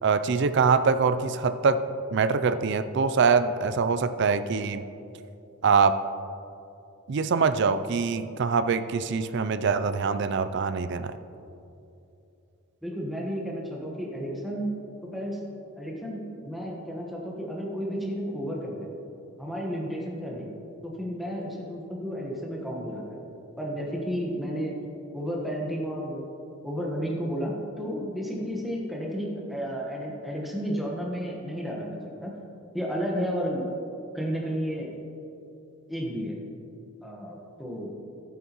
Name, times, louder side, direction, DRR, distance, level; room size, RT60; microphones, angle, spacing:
voice 1, 0.0-1.8 2.1-4.8 5.6-6.0 7.1-11.1, right 5 dB, 50° right, 11 dB, 0.4 m, -24 dB
voice 2, 12.8-15.4 15.8-18.9 19.4-20.5 20.8-23.2 23.6-24.8 25.1-26.2 26.6-32.3 32.7-33.7 34.1-34.9 35.9-36.3 37.0-37.9, equal, ahead, -3 dB, 1.3 m, -32 dB
12.0 x 9.3 x 3.0 m, 2.7 s
head